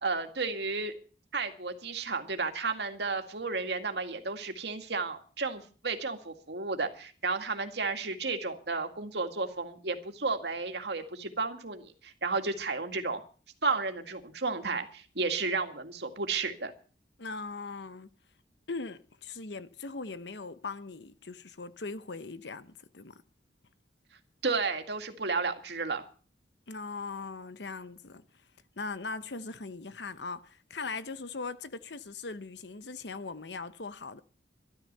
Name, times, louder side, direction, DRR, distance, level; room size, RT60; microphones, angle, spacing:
voice 1, 0.0-0.9 1.3-13.2 13.6-16.7 24.4-26.0, right 4 dB, 70° right, 2.1 m, -32 dB
voice 2, 17.2-18.1 18.7-23.2 26.7-28.2 28.8-34.2, left 4 dB, 75° left, 1.0 m, -40 dB
13.0 x 12.5 x 6.7 m
head